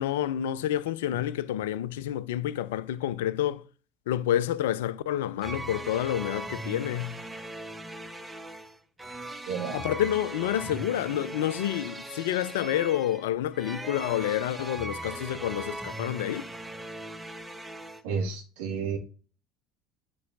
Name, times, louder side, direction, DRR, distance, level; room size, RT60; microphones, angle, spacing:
voice 1, 0.0-3.6 4.1-7.2 9.7-16.5, left 12 dB, 70° left, 0.4 m, -29 dB
sound 1, 5.4-18.0, right 2 dB, 10° right, 1.0 m, -39 dB
voice 2, 9.5-9.8 18.0-19.0, right 5 dB, 65° right, 1.8 m, -31 dB
9.5 x 5.4 x 2.6 m
figure-of-eight pair, 60°, 0 cm